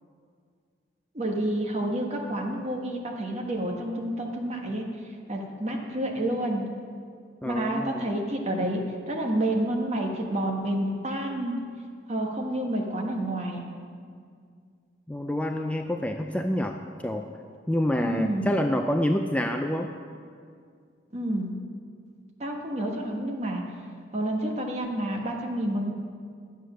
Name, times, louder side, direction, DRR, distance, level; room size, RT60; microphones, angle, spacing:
voice 1, 1.1-6.7 7.4-11.6 12.1-13.6 18.0-18.5 21.1-21.5 22.4-23.6 24.1-25.9, right 1 dB, 40° right, 1 dB, 1.4 m, -29 dB
voice 2, 7.4-8.1 15.1-17.2 17.7-19.9, left 1 dB, 10° left, 4 dB, 0.4 m, -27 dB
11.5 x 8.2 x 6.3 m, 2.2 s
head